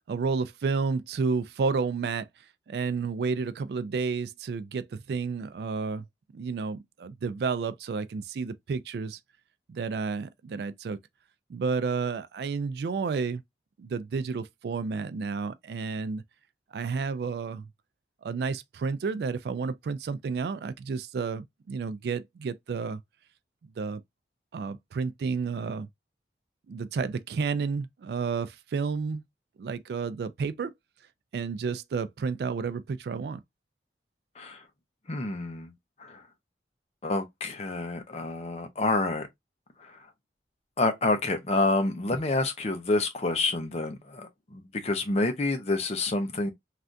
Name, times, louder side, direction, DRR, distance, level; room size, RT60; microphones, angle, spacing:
voice 1, 0.1-6.1 6.3-9.2 9.7-11.0 11.5-13.4 13.8-16.2 16.7-17.7 18.2-23.0 23.8-24.0 24.5-25.9 26.7-29.2 29.6-30.7 31.3-33.4, right 5 dB, 65° right, 0.3 m, -31 dB
voice 2, 35.1-35.7 36.0-36.2 37.0-39.3 39.8-40.0 40.8-46.5, left 2 dB, 35° left, 0.6 m, -28 dB
3.2 x 2.4 x 2.5 m
head